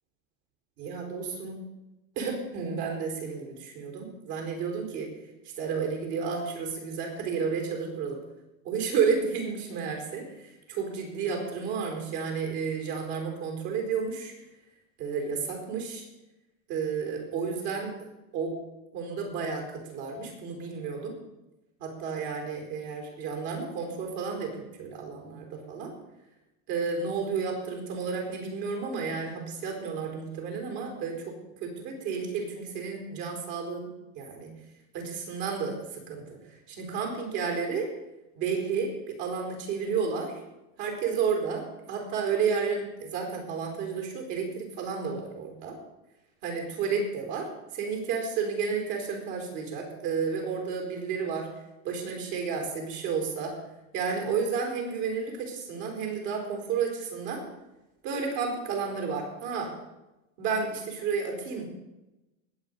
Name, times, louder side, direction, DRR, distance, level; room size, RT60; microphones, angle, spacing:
voice 1, 0.8-1.6 2.2-5.1 5.6-8.2 8.6-14.3 15.0-16.0 16.7-18.0 18.3-18.5 18.9-21.2 21.8-25.9 26.7-31.4 31.6-33.9 34.1-34.5 34.9-36.2 36.7-37.9 38.4-40.4 40.8-45.7 46.4-51.5 51.8-53.6 53.9-57.4 58.0-59.7 60.4-61.6, right 5 dB, 55° right, 2 dB, 4.7 m, -31 dB
20.0 x 8.1 x 5.5 m, 0.98 s
supercardioid pair, 160°, 41 cm